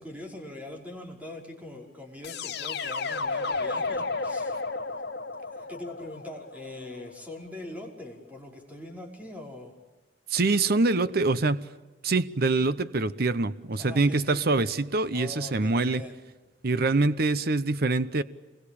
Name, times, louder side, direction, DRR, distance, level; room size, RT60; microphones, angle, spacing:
voice 1, 0.0-4.6 5.5-9.7 13.8-14.7 15.1-16.1, left 2 dB, 10° right, 5.4 m, -42 dB
sound 1, 2.2-7.2, left 3 dB, 65° left, 3.0 m, -32 dB
voice 2, 10.3-11.7 12.0-16.0 16.6-18.2, right 3 dB, 60° right, 0.9 m, -25 dB
28.0 x 22.0 x 8.7 m
head